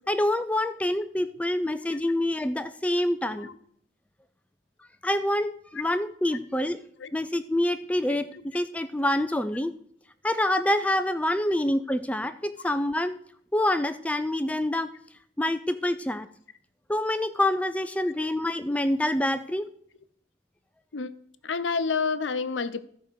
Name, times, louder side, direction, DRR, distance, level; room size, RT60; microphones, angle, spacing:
voice 1, 0.1-3.5 5.0-6.8 7.1-8.3 8.5-9.7 10.2-13.2 13.5-14.9 15.4-16.3 16.9-19.7, left 1 dB, 5° left, 0.3 m, -26 dB
voice 2, 21.4-22.8, left 5 dB, 90° left, 0.8 m, -29 dB
13.5 x 5.0 x 6.3 m
head